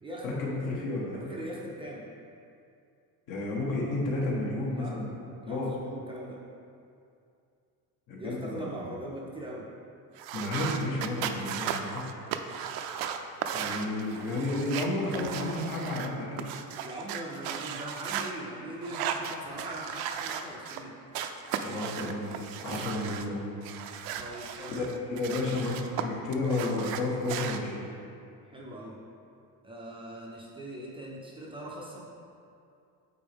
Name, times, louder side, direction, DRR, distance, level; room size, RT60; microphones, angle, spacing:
voice 1, 0.2-1.2 3.3-5.1 5.4-5.7 8.1-8.7 10.3-12.0 13.5-16.5 21.6-23.4 24.7-27.9, left 2 dB, 65° left, -4 dB, 1.4 m, -32 dB
voice 2, 1.1-2.1 4.7-5.0 5.4-6.4 8.2-9.7 16.8-21.0 24.2-24.8 28.4-29.0 29.6-32.1, right 1 dB, 15° right, -4 dB, 0.4 m, -41 dB
sound 1, 10.2-18.3 18.8-20.8 21.1-23.3 23.6-26.0 26.3-27.6, right 8 dB, 65° right, 0.5 m, -36 dB
8.7 x 4.2 x 3.5 m, 2.5 s
cardioid pair, 175°, 38 cm